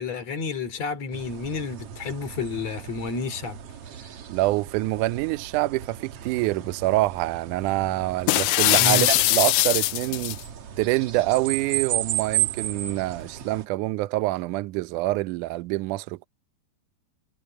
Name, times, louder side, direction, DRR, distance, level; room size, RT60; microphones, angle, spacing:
voice 1, 0.0-3.6 8.8-9.1, left 4 dB, 45° left, 3.6 m, -30 dB
sound 1, 1.1-13.7, right 12 dB, 65° right, 1.6 m, -34 dB
voice 2, 4.3-10.4 10.8-16.3, right 18 dB, 85° right, 1.8 m, -26 dB
sound 2, 8.3-10.4, left 18 dB, 85° left, 1.9 m, -21 dB
omnidirectional pair, 4.4 m